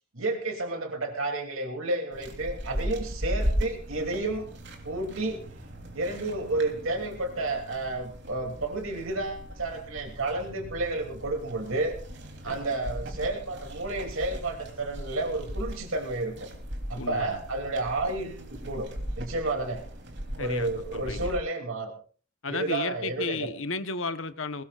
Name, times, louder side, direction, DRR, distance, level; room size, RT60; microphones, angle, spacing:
voice 1, 0.1-4.4 4.8-5.5 5.9-12.0 12.4-16.5 16.9-18.9 19.2-19.8 20.4-21.9 22.5-23.5, right 2 dB, 75° right, 3 dB, 2.9 m, -31 dB
sound 1, 2.1-21.4, equal, 55° right, 3.4 m, -37 dB
voice 2, 16.9-17.4 20.4-21.3 22.4-24.6, left 3 dB, 65° left, 11 dB, 1.1 m, -34 dB
21.0 x 19.5 x 2.5 m, 0.38 s
head